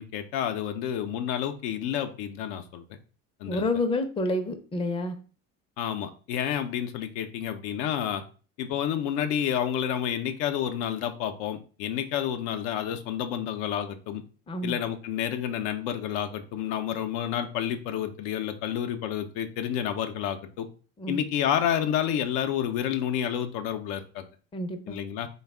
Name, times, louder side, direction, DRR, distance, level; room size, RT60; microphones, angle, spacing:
voice 1, 0.0-2.8 3.4-3.7 5.8-8.2 8.6-14.2 14.6-20.7 21.1-24.2 24.9-25.3, left 9 dB, 65° left, 7 dB, 0.6 m, -29 dB
voice 2, 3.5-5.2 14.5-14.8 21.0-21.2 24.5-25.0, left 2 dB, 15° left, 6 dB, 0.5 m, -29 dB
3.4 x 2.3 x 3.4 m, 0.38 s
hypercardioid pair, 70°, 42 cm